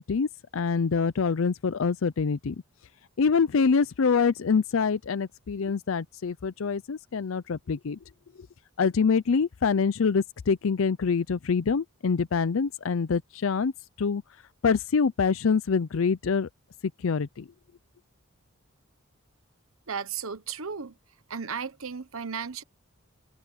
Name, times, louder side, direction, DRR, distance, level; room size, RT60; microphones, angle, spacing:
voice 1, 0.0-2.6 3.2-8.0 8.8-13.7 14.0-14.2 14.6-16.5 17.0-17.5, left 5 dB, 70° left, 0.5 m, -25 dB
voice 2, 19.9-21.0 21.3-22.6, right 6 dB, 75° right, 1.2 m, -34 dB
open air
head